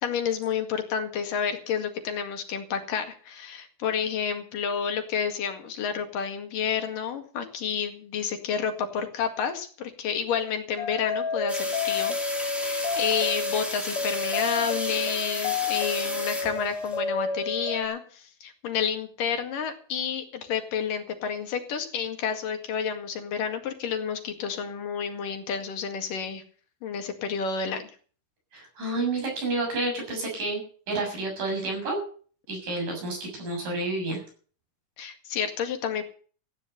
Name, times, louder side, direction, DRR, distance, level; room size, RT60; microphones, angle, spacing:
voice 1, 0.0-26.4 26.8-27.9 35.0-36.0, left 7 dB, 85° left, 5 dB, 3.7 m, -30 dB
sound 1, 10.8-17.9, left 4 dB, 50° left, 2.2 m, -30 dB
sound 2, 11.5-17.0, equal, ahead, 3.2 m, -34 dB
voice 2, 28.5-30.6 30.9-32.0 32.5-34.2, right 2 dB, 80° right, 1 dB, 8.8 m, -29 dB
15.0 x 9.9 x 6.8 m, 0.42 s
omnidirectional pair, 3.7 m